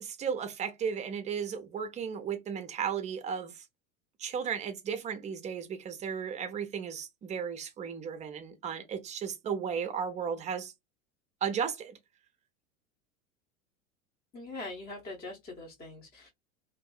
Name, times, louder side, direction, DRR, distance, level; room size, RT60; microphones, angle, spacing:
voice 1, 0.0-3.6 4.2-10.7 11.4-12.0, right 7 dB, 20° right, 0.5 m, -35 dB
voice 2, 14.3-16.3, left 2 dB, 25° left, 0.8 m, -42 dB
2.6 x 2.5 x 2.3 m
figure-of-eight pair, 85°, 41 cm